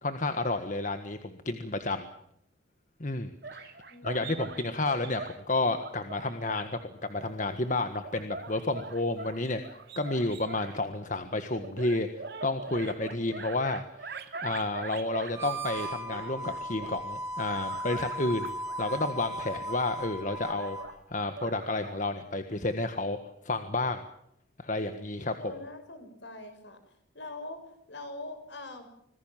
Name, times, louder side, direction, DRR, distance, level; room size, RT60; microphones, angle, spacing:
voice 1, 0.0-2.1 3.0-3.7 4.0-12.1 12.4-18.5 18.8-20.8 21.1-23.2 23.4-24.0 24.6-25.3, left 2 dB, 40° left, 8 dB, 1.6 m, -31 dB
sound 1, 3.4-5.4 5.8-6.7 7.1-10.8 11.5-15.4 15.8-17.0 17.4-22.1, right 4 dB, 55° right, 2.5 m, -43 dB
voice 2, 3.9-4.7 25.4-28.9, left 2 dB, 65° left, 8 dB, 6.3 m, -43 dB
Harmonica, 15.3-20.9, right 1 dB, 15° right, 4.4 m, -37 dB
26.5 x 20.0 x 7.5 m, 0.74 s
head